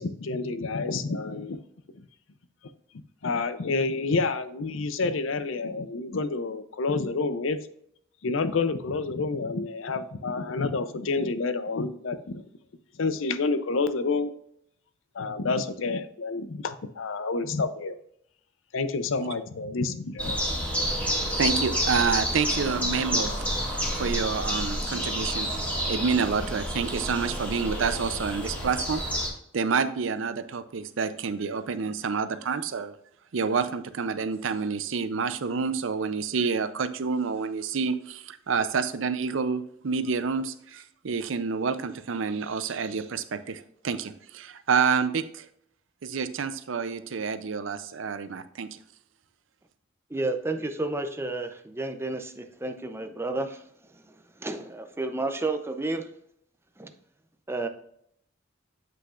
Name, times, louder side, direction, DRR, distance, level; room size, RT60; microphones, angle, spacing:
voice 1, 0.0-1.6 3.2-7.6 8.2-12.4 13.0-14.3 15.1-17.9 18.7-20.4, left 3 dB, 85° left, 12 dB, 0.6 m, -29 dB
sound 1, 20.2-29.3, equal, 5° left, 1.9 m, -29 dB
voice 2, 21.3-25.5 25.9-29.0 29.5-32.9 33.3-45.5 46.0-48.8, right 5 dB, 75° right, 12 dB, 0.5 m, -28 dB
voice 3, 50.1-53.6 54.4-56.1 56.8-56.9 57.5-57.7, right 2 dB, 15° right, 7 dB, 0.6 m, -31 dB
7.8 x 5.8 x 2.4 m, 0.71 s
head